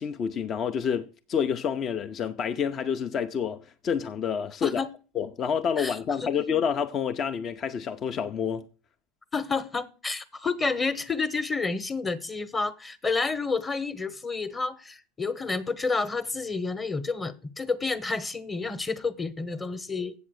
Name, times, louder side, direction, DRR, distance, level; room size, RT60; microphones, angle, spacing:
voice 1, 0.0-4.9 5.1-8.7, left 7 dB, 40° left, 0.6 m, -28 dB
voice 2, 5.8-6.3 9.3-20.1, left 4 dB, 20° left, 1.1 m, -30 dB
8.1 x 7.2 x 6.4 m
supercardioid pair, 105°, 0 cm